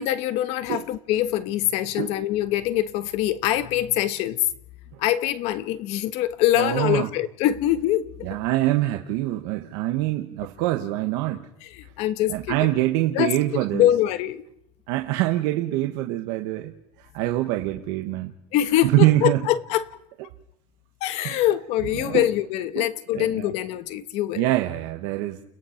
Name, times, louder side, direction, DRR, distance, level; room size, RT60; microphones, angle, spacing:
voice 1, 0.0-4.4 5.0-8.4 11.6-12.7 13.1-13.4 13.7-14.4 18.5-19.9 21.0-24.5, left 13 dB, 60° left, 1.3 m, -24 dB
voice 2, 6.6-7.1 8.2-11.5 12.3-13.9 14.9-18.3 18.8-19.4 21.2-21.4 22.0-22.3 22.8-22.9 23.1-23.5 24.3-25.4, right 16 dB, 80° right, 1.4 m, -24 dB
30.0 x 17.0 x 5.9 m
cardioid pair, 175°, 12 cm